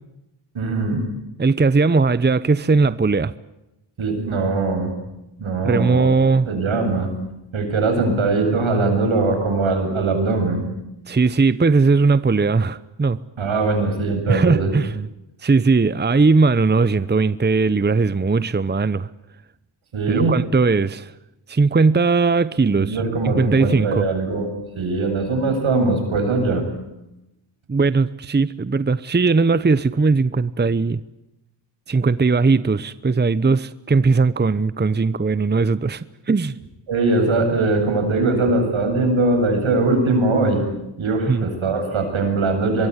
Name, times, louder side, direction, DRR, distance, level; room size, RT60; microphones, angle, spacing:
voice 1, 0.5-1.0 4.0-4.9 5.4-6.1 6.4-7.1 7.5-10.6 13.4-14.7 19.9-20.3 22.8-24.5 24.7-26.6 36.9-40.6 41.0-42.9, right 3 dB, 75° right, 7.8 m, -21 dB
voice 2, 1.4-3.3 5.6-6.5 11.1-13.2 14.3-15.1 15.4-19.1 20.1-21.1 21.5-24.1 27.7-31.0 31.9-36.6 41.3-41.5, right 4 dB, 20° right, 0.9 m, -18 dB
24.0 x 22.5 x 9.8 m
cardioid pair, 60°, 47 cm